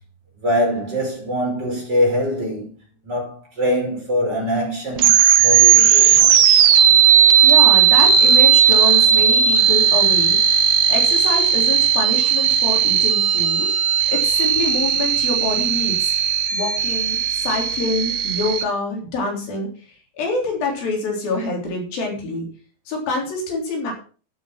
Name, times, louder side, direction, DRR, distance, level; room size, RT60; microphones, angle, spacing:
voice 1, 0.4-2.7 3.0-6.2, equal, 25° right, 6.1 m, -23 dB
sound 1, 5.0-18.6, right 8 dB, 65° right, 1.6 m, -16 dB
voice 2, 7.4-16.1 16.5-22.5 22.9-23.9, left 2 dB, 75° left, 5.3 m, -26 dB
11.5 x 9.5 x 6.0 m
omnidirectional pair, 4.2 m